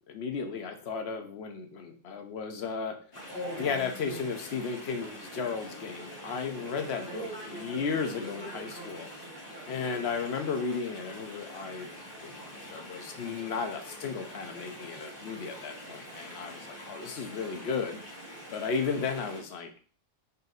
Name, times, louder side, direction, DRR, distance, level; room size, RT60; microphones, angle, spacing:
voice 1, 0.1-3.0 3.6-9.1 9.7-11.9 12.2-12.3 12.7-18.0 18.5-19.7, left 5 dB, 65° left, 5 dB, 0.9 m, -34 dB
Chatter / Stream, 3.1-19.4, equal, 45° left, 1.8 m, -43 dB
4.1 x 2.6 x 3.8 m, 0.40 s
omnidirectional pair, 1.3 m